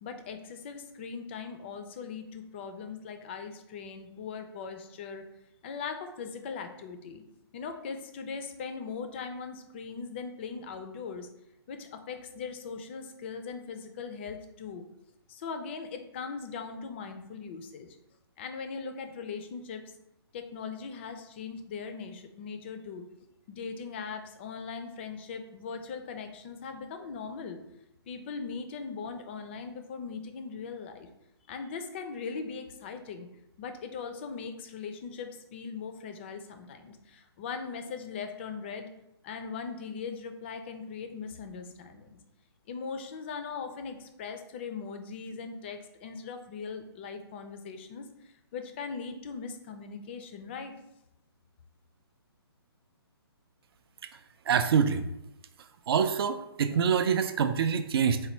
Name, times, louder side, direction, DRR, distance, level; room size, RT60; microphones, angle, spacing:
voice 1, 0.0-5.3 5.6-7.2 7.5-11.3 11.7-14.8 15.3-18.0 18.4-19.8 20.3-23.1 23.5-27.6 28.1-31.1 31.5-33.3 33.6-38.9 39.2-42.2 42.7-48.1 48.5-50.7, left 5 dB, 25° left, 7 dB, 0.4 m, -40 dB
voice 2, 54.5-55.1 55.9-58.2, right 7 dB, 65° right, 9 dB, 0.4 m, -25 dB
4.2 x 2.2 x 4.3 m, 0.85 s
hypercardioid pair, 160°, 13 cm